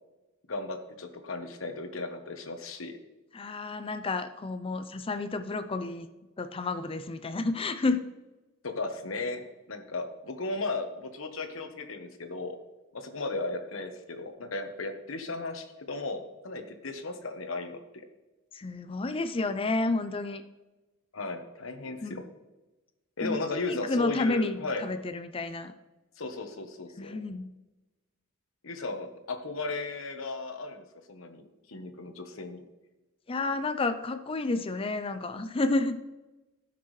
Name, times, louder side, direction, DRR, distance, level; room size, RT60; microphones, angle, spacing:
voice 1, 0.5-2.9 8.6-12.6 12.9-18.0 21.1-22.2 23.2-24.8 26.2-27.1 28.6-32.6, left 3 dB, 85° left, 6 dB, 1.2 m, -36 dB
voice 2, 3.3-6.1 6.4-8.0 18.5-20.4 22.0-22.2 23.2-25.7 27.0-27.5 33.3-36.0, left 3 dB, 25° left, 10 dB, 0.5 m, -30 dB
16.5 x 5.9 x 3.2 m, 1.1 s
head